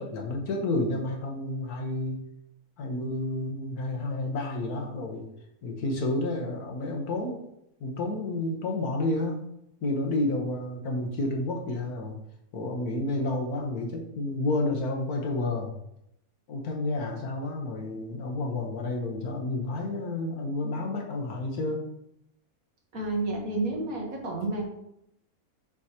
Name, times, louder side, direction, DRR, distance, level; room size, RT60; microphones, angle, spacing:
voice 1, 0.0-2.2 2.8-5.2 5.6-7.4 7.8-9.4 9.8-12.2 12.5-15.7 16.5-21.8, left 2 dB, 90° left, 1 dB, 1.6 m, -30 dB
voice 2, 22.9-24.6, right 2 dB, 70° right, 0 dB, 1.7 m, -30 dB
6.9 x 4.8 x 2.9 m, 0.79 s
omnidirectional pair, 1.6 m